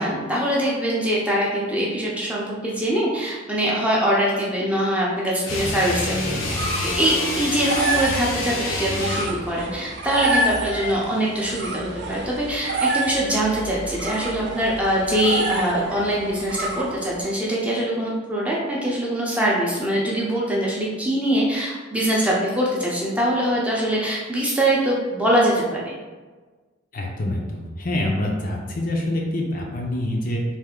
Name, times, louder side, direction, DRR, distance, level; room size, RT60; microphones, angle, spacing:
voice 1, 0.0-6.4 7.0-25.9, right 1 dB, 5° right, -5 dB, 0.6 m, -23 dB
sound 1, 5.4-9.4, left 2 dB, 75° left, 0.7 m, -27 dB
sound 2, 6.1-17.3, right 2 dB, 55° right, 0.5 m, -29 dB
voice 2, 26.9-30.4, left 1 dB, 45° left, -1 dB, 0.5 m, -26 dB
3.3 x 2.7 x 3.6 m, 1.3 s
head